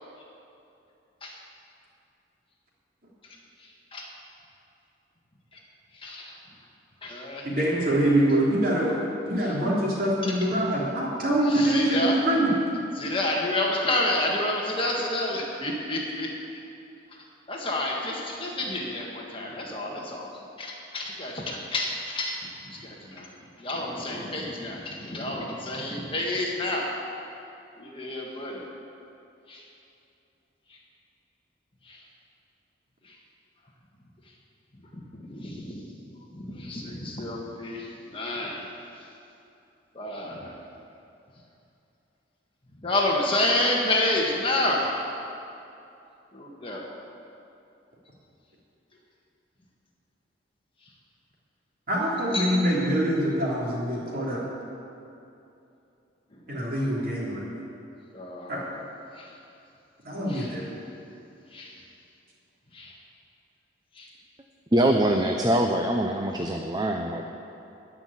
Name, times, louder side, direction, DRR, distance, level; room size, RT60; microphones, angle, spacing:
voice 1, 6.0-6.3 7.0-7.5 11.5-12.1 12.9-16.3 17.5-20.3 20.6-21.9 22.1-22.3 22.7-23.3 23.6-26.8 27.8-28.6 29.5-29.6 31.9-32.0 35.1-35.8 36.3-38.7 39.9-40.5 42.8-45.0 46.3-46.9 52.3-52.4 58.1-58.7 59.2-59.3 60.3-60.5 61.5-61.7 62.7-62.9 64.0-64.1, left 1 dB, 25° left, -2 dB, 1.6 m, -29 dB
voice 2, 7.4-9.0 9.2-12.5 51.9-54.4 56.5-57.4 58.5-58.6 60.0-60.7, right 1 dB, 45° right, -5 dB, 3.1 m, -24 dB
voice 3, 64.7-67.2, right 1 dB, 20° right, 3 dB, 0.6 m, -23 dB
14.5 x 5.9 x 9.9 m, 2.8 s
head